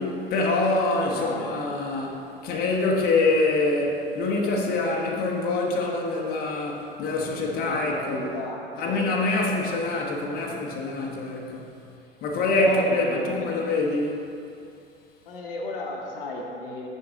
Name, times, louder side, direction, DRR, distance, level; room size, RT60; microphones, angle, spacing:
voice 1, 0.0-8.3 8.8-11.7 12.2-14.2, left 2 dB, 30° left, -2 dB, 1.0 m, -25 dB
voice 2, 1.1-1.5 7.6-9.3 12.5-12.8 13.1-13.5 15.3-16.9, left 2 dB, 65° left, 0 dB, 1.0 m, -34 dB
6.9 x 5.5 x 3.9 m, 2.6 s
figure-of-eight pair, 90°, 31 cm